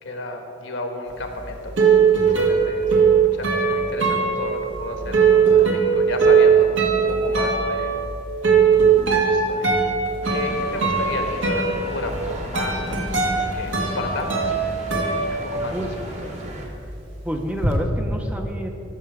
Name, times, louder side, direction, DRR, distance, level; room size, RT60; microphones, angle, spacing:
voice 1, 0.0-7.9 9.1-9.7 10.3-13.1 13.5-14.7 15.4-15.9 16.2-16.3, left 2 dB, 75° left, 4 dB, 1.2 m, -32 dB
sound 1, 1.2-16.0 16.3-17.7, right 5 dB, 75° right, 1.5 m, -20 dB
sound 2, 10.2-16.7, right 1 dB, 35° right, 1.1 m, -36 dB
voice 2, 17.2-18.7, equal, 5° right, 4 dB, 0.6 m, -29 dB
14.0 x 6.0 x 4.7 m, 2.8 s
head